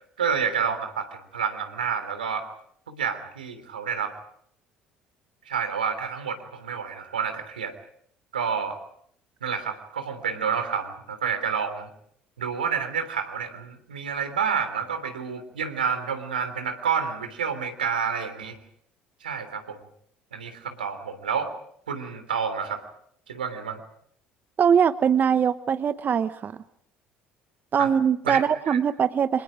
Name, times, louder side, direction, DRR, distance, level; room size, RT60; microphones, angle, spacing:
voice 1, 0.2-2.5 2.9-4.1 5.4-7.7 8.3-8.8 9.4-11.9 12.4-18.6 19.2-19.8 20.3-21.5 21.9-22.8 23.3-23.8 27.8-27.9 28.2-28.8, right 7 dB, 85° right, 8 dB, 3.2 m, -29 dB
voice 2, 24.6-26.5 27.7-29.4, right 7 dB, 40° right, 12 dB, 1.1 m, -22 dB
29.5 x 26.5 x 5.0 m, 0.65 s
hypercardioid pair, 60°, 5 cm